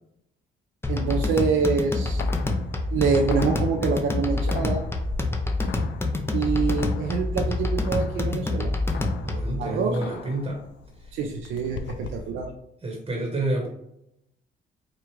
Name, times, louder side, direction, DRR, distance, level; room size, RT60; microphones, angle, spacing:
sound 1, 0.8-9.6, left 2 dB, 10° left, 0.6 m, -27 dB
voice 1, 0.9-2.2 2.9-4.8 6.3-8.7 9.6-10.1 11.1-12.5, right 5 dB, 80° right, 2 dB, 0.5 m, -26 dB
sound 2, 1.6-12.3, left 5 dB, 65° left, 0.4 m, -42 dB
voice 2, 9.2-10.6 11.0-11.1 11.8-11.9 12.2-12.3 12.8-13.7, right 2 dB, 25° right, 0 dB, 1.1 m, -29 dB
4.7 x 2.4 x 3.1 m, 0.80 s
cardioid pair, 90°, 20 cm